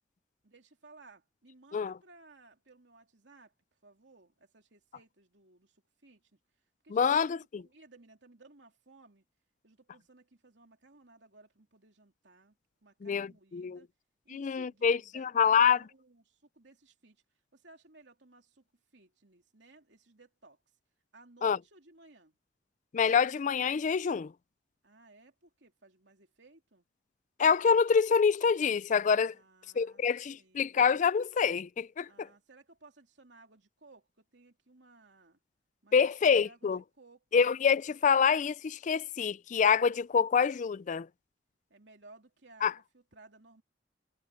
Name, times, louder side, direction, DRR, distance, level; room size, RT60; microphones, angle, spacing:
voice 1, 0.4-3.5 3.8-6.3 6.8-9.2 9.6-12.6 12.8-13.9 14.2-17.2 17.5-18.6 18.9-20.6 21.1-22.4 24.8-26.9 29.3-30.0 30.3-31.0 32.0-35.4 35.8-37.5 41.7-43.6, right 2 dB, 70° right, 3.3 m, -59 dB
voice 2, 6.9-7.6 13.0-13.8 14.3-15.8 21.4-21.6 22.9-24.3 27.4-29.3 29.8-32.3 35.9-36.8 37.3-41.1 42.6-42.7, left 6 dB, 45° left, 0.4 m, -26 dB
head